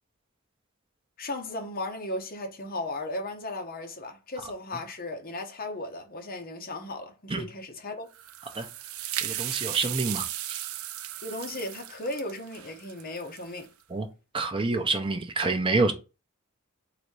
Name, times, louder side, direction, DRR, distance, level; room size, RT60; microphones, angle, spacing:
voice 1, 1.2-8.1 11.2-13.7, left 2 dB, 40° left, 0.9 m, -36 dB
sound 1, 8.1-13.6, right 12 dB, 70° right, 0.4 m, -35 dB
voice 2, 9.2-10.2 13.9-14.1 14.3-15.9, right 3 dB, 25° right, 0.7 m, -27 dB
4.0 x 2.8 x 4.7 m
head